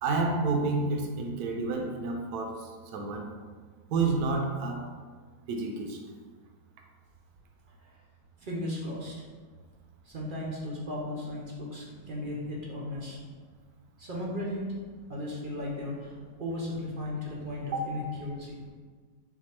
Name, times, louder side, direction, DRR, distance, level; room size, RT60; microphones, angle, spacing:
voice 1, 0.0-3.3 3.9-4.8 5.5-6.0 17.7-17.8, right 3 dB, 80° right, 2 dB, 1.1 m, -29 dB
voice 2, 8.4-9.1 10.0-13.2 14.0-14.7 15.1-18.6, left 1 dB, 50° right, -4 dB, 0.6 m, -36 dB
4.3 x 2.4 x 4.2 m, 1.5 s
omnidirectional pair, 1.6 m